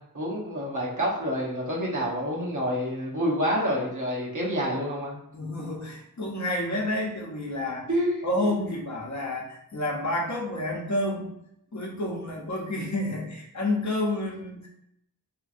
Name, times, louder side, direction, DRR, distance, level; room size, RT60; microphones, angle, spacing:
voice 1, 0.1-5.2 7.9-8.5, equal, 55° right, -4 dB, 1.0 m, -28 dB
voice 2, 5.3-7.9 8.2-11.4 11.7-14.7, left 1 dB, 50° left, -1 dB, 0.7 m, -29 dB
2.8 x 2.5 x 2.5 m, 0.76 s
wide cardioid pair, 50°, 37 cm